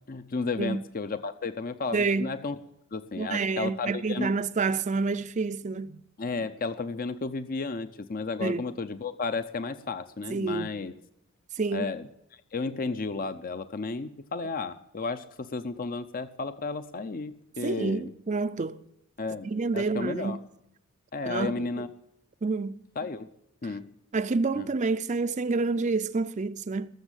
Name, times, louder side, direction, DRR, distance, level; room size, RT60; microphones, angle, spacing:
voice 1, 0.1-2.6 2.9-4.3 6.2-10.9 11.7-12.1 12.3-18.1 19.2-20.4 21.1-21.9 23.0-23.3 23.6-23.9 24.5-24.7, left 4 dB, 40° left, 0.6 m, -33 dB
voice 2, 1.9-2.3 3.2-6.0 8.4-8.7 10.3-10.7 11.6-11.9 17.6-18.8 19.4-20.4 21.2-21.8 22.4-22.8 23.6-23.7 24.1-26.9, right 4 dB, 35° right, 0.5 m, -28 dB
19.5 x 7.3 x 9.9 m
head